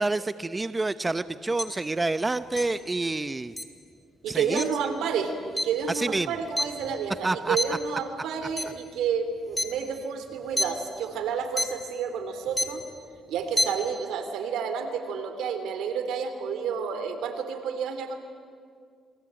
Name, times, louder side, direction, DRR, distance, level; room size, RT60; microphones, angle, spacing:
voice 1, 0.0-3.5 4.3-4.6 5.9-6.3 7.2-7.6, right 2 dB, 20° right, 13 dB, 0.8 m, -28 dB
sound 1, 1.6-1.7 2.6-2.7 3.6-3.7 4.6-4.7 5.6-5.7 6.1-7.2 7.6-7.8 8.4-8.8 9.5-9.6 10.4-10.7 11.6-11.7 12.5-12.8 13.4-13.7, left 1 dB, 5° left, 3.0 m, -27 dB
voice 2, 4.2-12.8 13.3-18.2, right 6 dB, 85° right, 8 dB, 3.2 m, -30 dB
28.5 x 22.0 x 8.9 m, 2.2 s
cardioid pair, 90°, 0 cm